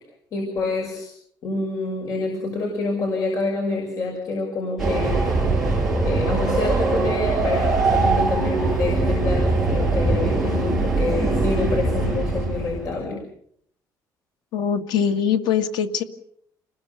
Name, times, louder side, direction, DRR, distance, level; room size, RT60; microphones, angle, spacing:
voice 1, 0.3-1.1 1.4-5.6 6.0-13.2, left 3 dB, 45° left, 1 dB, 6.2 m, -27 dB
Train, 4.8-12.9, right 3 dB, ahead, 7.1 m, -22 dB
voice 2, 14.5-16.0, left 8 dB, 70° left, 6 dB, 2.1 m, -22 dB
29.5 x 20.5 x 6.9 m, 0.69 s
cardioid pair, 180°, 8 cm